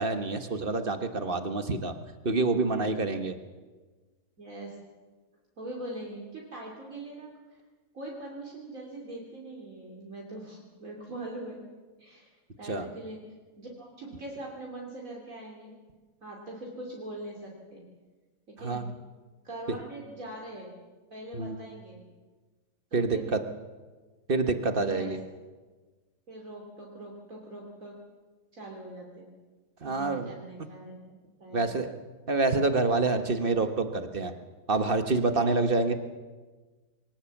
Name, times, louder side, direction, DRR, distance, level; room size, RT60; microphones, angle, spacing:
voice 1, 0.0-1.9 2.2-3.4 12.6-12.9 18.6-18.9 21.3-21.6 22.9-23.4 24.3-25.2 29.8-30.3 31.5-31.9 32.3-34.3 34.7-35.9, right 3 dB, 35° right, 8 dB, 1.4 m, -27 dB
voice 2, 4.4-4.8 5.6-7.6 7.9-11.6 12.0-12.3 12.6-13.2 13.6-15.7 16.2-17.8 18.5-18.9 19.4-20.8 21.1-22.0 22.9-23.2 24.7-25.1 26.3-28.0 28.5-29.3 29.8-31.7 35.3-35.6, right 1 dB, 55° right, -2 dB, 3.4 m, -42 dB
22.5 x 18.5 x 7.3 m, 1.3 s
omnidirectional pair, 1.7 m